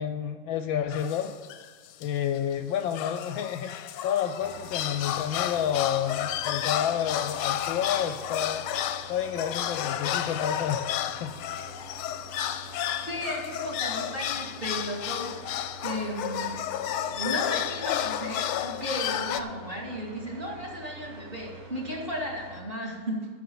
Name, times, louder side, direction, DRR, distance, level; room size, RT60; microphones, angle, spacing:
voice 1, 0.0-1.3 2.0-8.6 9.1-10.8 11.2-11.3, left 9 dB, 75° left, 8 dB, 1.3 m, -30 dB
sound 1, 0.9-1.7 2.0-2.1 2.4-2.5 2.9-19.4, left 11 dB, 90° left, 1.5 m, -32 dB
sound 2, 4.4-22.6, right 1 dB, 55° right, 2.4 m, -46 dB
voice 2, 13.0-16.5 17.0-23.3, equal, 25° right, -3 dB, 2.5 m, -35 dB
9.5 x 7.1 x 8.4 m, 1.5 s
omnidirectional pair, 2.3 m